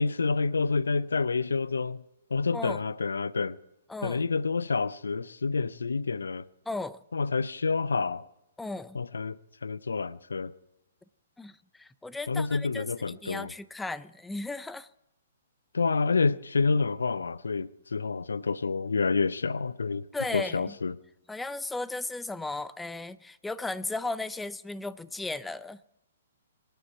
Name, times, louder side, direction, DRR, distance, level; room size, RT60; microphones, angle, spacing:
voice 1, 0.0-2.0 2.3-3.6 4.0-6.4 7.1-8.2 8.9-9.4 9.6-10.5 12.3-13.5 15.7-20.0 20.3-20.9, left 4 dB, 75° left, 0.6 m, -28 dB
voice 2, 3.9-4.2 6.7-7.0 8.6-9.0 11.4-14.9 20.1-20.7 21.3-25.8, left 2 dB, 5° left, 0.5 m, -36 dB
24.5 x 10.5 x 4.6 m
figure-of-eight pair, 125°, 0 cm